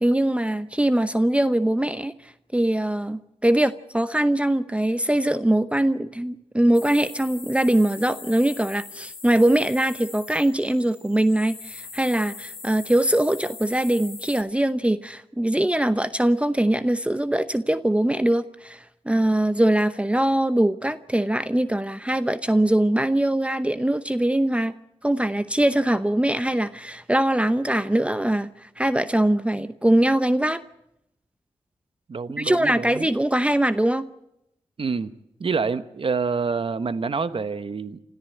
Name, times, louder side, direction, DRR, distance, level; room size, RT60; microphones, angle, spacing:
voice 1, 0.0-2.1 2.5-24.7 25.0-30.6 32.4-34.1, right 1 dB, 10° right, 12 dB, 0.8 m, -22 dB
sound 1, 6.7-14.4, left 4 dB, 55° left, 3.6 m, -41 dB
voice 2, 32.1-33.1 34.8-35.1 35.4-38.0, right 5 dB, 55° right, 13 dB, 1.1 m, -27 dB
27.0 x 14.0 x 7.8 m, 0.84 s
cardioid pair, 45°, 11 cm